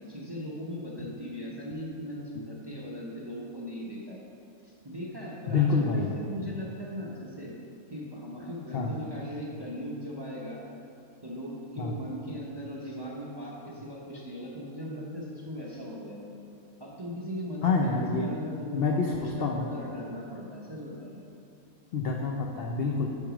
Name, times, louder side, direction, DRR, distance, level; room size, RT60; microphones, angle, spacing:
voice 1, 0.0-4.2 4.6-7.5 7.9-10.6 11.2-16.3 16.8-21.2, equal, 25° right, -4 dB, 0.5 m, -39 dB
voice 2, 5.5-6.1 8.7-8.9 11.8-11.9 17.6-18.3 18.7-19.7 21.9-23.1, left 4 dB, 80° left, 1 dB, 0.5 m, -27 dB
6.0 x 5.7 x 4.9 m, 2.8 s
omnidirectional pair, 1.6 m